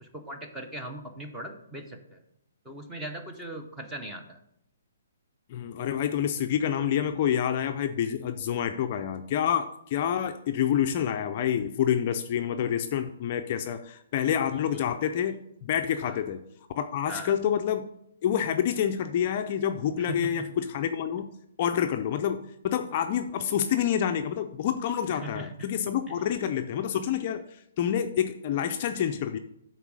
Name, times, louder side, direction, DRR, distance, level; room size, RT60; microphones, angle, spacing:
voice 1, 0.0-2.2 2.6-4.4 14.7-14.9 16.0-16.2 17.1-17.3 20.0-20.5 25.1-25.5, right 1 dB, 5° right, 3 dB, 0.7 m, -39 dB
voice 2, 5.5-16.4 16.8-17.9 18.2-21.3 21.6-29.4, left 9 dB, 30° left, 6 dB, 0.4 m, -28 dB
9.2 x 3.9 x 6.2 m, 0.76 s
hypercardioid pair, 170°, 0 cm